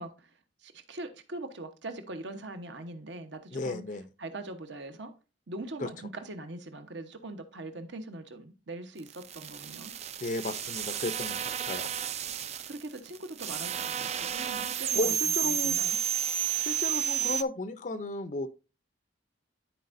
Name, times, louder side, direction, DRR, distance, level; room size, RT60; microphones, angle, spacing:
voice 1, 0.0-3.8 4.2-5.1 5.5-9.9 12.7-15.2 15.4-16.0, right 2 dB, 65° right, 1.1 m, -42 dB
voice 2, 3.5-4.0 5.8-5.9 10.2-11.9 14.9-16.1 16.6-18.5, left 2 dB, 40° left, 0.5 m, -34 dB
sound 1, 9.0-17.4, right 9 dB, 35° right, 0.4 m, -31 dB
13.5 x 4.6 x 2.6 m
head